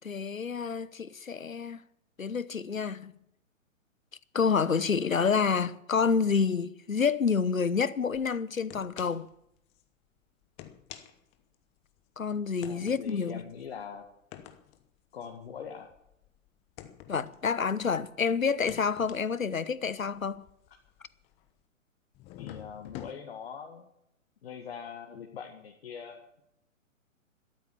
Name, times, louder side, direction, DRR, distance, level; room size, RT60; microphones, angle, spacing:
voice 1, 0.0-1.8 2.2-3.1 4.3-9.3 12.2-13.4 17.1-20.4, left 5 dB, 75° left, 1.0 m, -28 dB
sound 1, 8.1-8.3 8.7-9.4 9.7-9.8 10.4-12.0 12.6-18.1 18.5-21.6 22.1-23.1, left 12 dB, 15° left, 0.8 m, -49 dB
voice 2, 12.6-14.1 15.1-15.9 22.4-23.9 24.4-26.4, left 7 dB, 45° left, 1.9 m, -43 dB
13.0 x 12.5 x 7.0 m
figure-of-eight pair, 125°, 40 cm